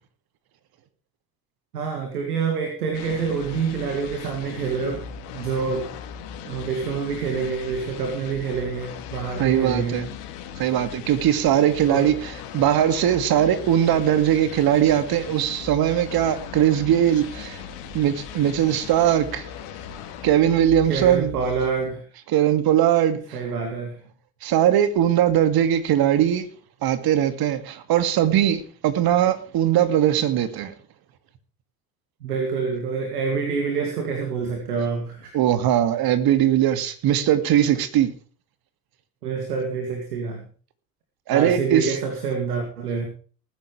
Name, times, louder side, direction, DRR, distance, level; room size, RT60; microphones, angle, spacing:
voice 1, 1.7-5.9 6.4-10.0 11.8-12.0 20.8-22.0 23.3-24.0 32.2-35.3 39.2-40.5 41.3-43.1, right 5 dB, 80° right, 2.6 m, -27 dB
sound 1, 2.9-21.9, left 8 dB, 65° left, 2.6 m, -38 dB
voice 2, 9.4-10.1 10.6-17.6 17.9-19.5 20.2-21.3 22.3-23.4 24.4-26.5 26.8-30.7 35.3-38.1 41.3-42.0, right 11 dB, 50° right, 2.3 m, -20 dB
19.5 x 10.5 x 3.3 m
figure-of-eight pair, 60°, 45 cm